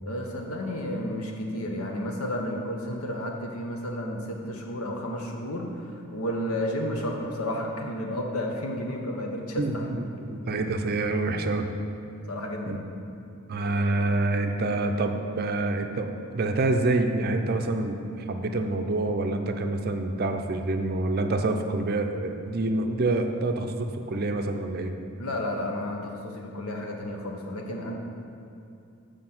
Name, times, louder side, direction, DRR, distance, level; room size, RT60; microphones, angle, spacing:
voice 1, 0.0-10.0 12.3-12.9 25.2-27.9, left 1 dB, 80° left, 1 dB, 1.0 m, -32 dB
voice 2, 9.6-11.7 12.7-12.8 13.5-18.0 18.3-24.9, right 2 dB, 45° right, 5 dB, 0.5 m, -27 dB
7.5 x 5.1 x 5.9 m, 2.6 s
head